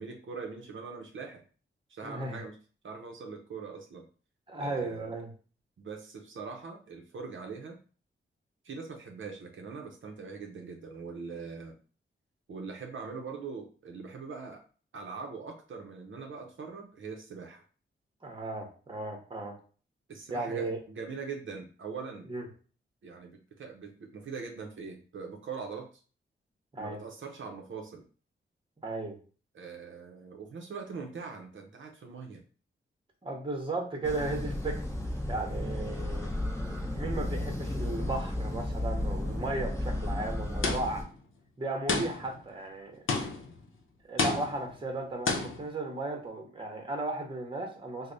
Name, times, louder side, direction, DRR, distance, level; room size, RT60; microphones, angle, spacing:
voice 1, 0.0-1.4 1.9-2.6 2.8-4.0 4.6-5.2 5.8-7.8 8.6-11.7 12.5-14.6 14.9-17.6 20.1-22.3 23.0-25.9 26.8-28.1 29.5-32.4, right 5 dB, 70° right, 2 dB, 0.6 m, -42 dB
voice 2, 2.0-2.4 4.5-5.3 18.2-19.5 20.3-20.8 22.3-22.5 26.7-27.0 28.8-29.2 33.2-34.8 35.3-36.3 36.9-41.0 41.6-43.0 44.1-48.1, right 2 dB, 25° right, 2 dB, 0.8 m, -35 dB
sound 1, 34.0-41.0, left 1 dB, 15° left, 0.7 m, -33 dB
sound 2, 40.6-41.1 41.9-42.4 43.1-43.6 44.2-44.8 45.3-45.7, left 3 dB, 75° left, 0.6 m, -31 dB
3.3 x 2.0 x 3.8 m, 0.39 s
wide cardioid pair, 135°, 21 cm